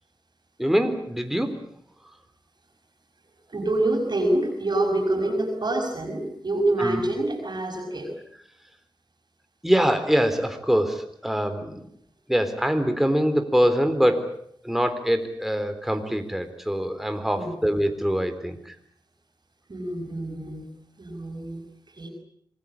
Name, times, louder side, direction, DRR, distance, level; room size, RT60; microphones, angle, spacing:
voice 1, 0.6-1.6 6.8-7.0 9.6-11.9 12.3-14.4 14.6-18.7, equal, 5° right, 7 dB, 3.8 m, -24 dB
voice 2, 3.5-8.1 17.3-17.5 19.7-20.7 21.0-21.6 21.9-22.1, right 2 dB, 55° right, 2 dB, 5.7 m, -26 dB
27.0 x 20.5 x 8.5 m, 0.67 s
wide cardioid pair, 65°, 9 cm